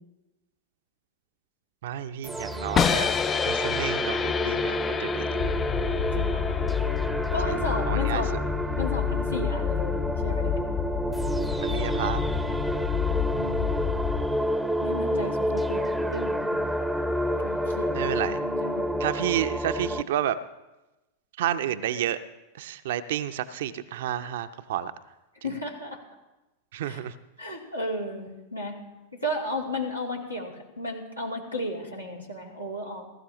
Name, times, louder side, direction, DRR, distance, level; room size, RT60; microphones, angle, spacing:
voice 1, 1.8-3.2 3.4-5.4 7.4-7.6 7.9-8.2 11.6-12.2 17.9-18.4 19.0-20.4 21.4-22.2 22.5-24.9 26.7-27.1, right 11 dB, 55° right, 11 dB, 0.6 m, -30 dB
sound 1, 2.2-20.0, equal, ahead, 0.7 m, -29 dB
sound 2, 2.8-8.7, left 8 dB, 25° left, 0.4 m, -30 dB
sound 3, 5.4-14.2, left 9 dB, 45° left, 2.2 m, -30 dB
voice 2, 6.1-6.6 7.3-8.3 8.8-10.6 13.4-13.8 14.8-16.6 17.4-19.0 25.4-26.0 26.8-27.0 27.4-28.8 29.1-33.0, left 1 dB, 90° left, -3 dB, 3.0 m, -34 dB
20.0 x 12.5 x 3.0 m, 1.0 s
figure-of-eight pair, 90°, 0 cm